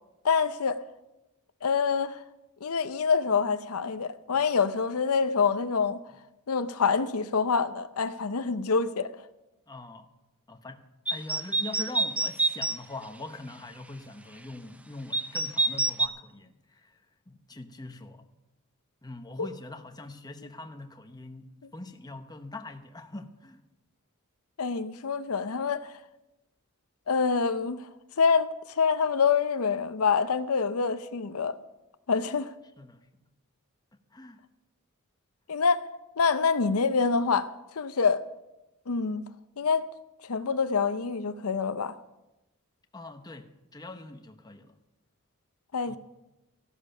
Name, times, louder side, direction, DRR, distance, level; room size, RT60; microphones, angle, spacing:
voice 1, 0.2-0.8 1.6-2.2 2.6-6.0 6.5-9.1 19.4-19.5 24.6-25.8 27.1-27.8 28.2-28.5 28.8-31.6 32.1-32.5 35.5-35.8 36.2-37.5 37.8-38.2 38.9-39.2 39.6-39.8 40.3-42.0 45.7-46.0, left 5 dB, 80° left, 0.7 m, -26 dB
voice 2, 9.7-10.1 10.5-10.8 11.1-17.0 17.3-18.3 19.0-23.6 32.8-33.2 34.1-34.4 42.9-44.7 45.9-46.0, left 2 dB, 20° left, 0.9 m, -43 dB
sound 1, 11.1-12.8 15.1-16.1, right 3 dB, 5° right, 0.5 m, -27 dB
15.0 x 12.0 x 5.6 m
head